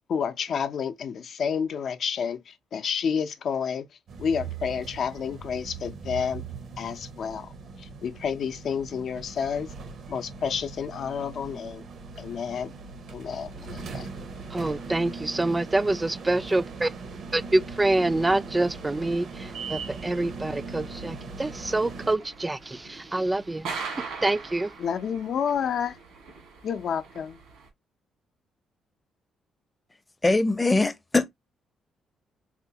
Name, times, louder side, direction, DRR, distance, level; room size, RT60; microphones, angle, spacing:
voice 1, 0.1-3.9 4.2-6.4 6.8-7.5 7.8-9.7 10.1-11.8 12.2-12.7 13.1-14.1 24.8-26.0 26.6-27.4, left 7 dB, 60° left, 0.6 m, -30 dB
sound 1, 4.1-22.2, right 4 dB, 60° right, 0.7 m, -40 dB
voice 2, 14.5-16.9 17.3-23.7 24.2-24.7, right 2 dB, 15° right, 0.3 m, -26 dB
sound 2, 21.6-27.7, right 5 dB, 90° right, 1.6 m, -41 dB
voice 3, 30.2-31.3, left 2 dB, 20° left, 0.6 m, -22 dB
4.2 x 2.2 x 2.8 m
cardioid pair, 90°, 0 cm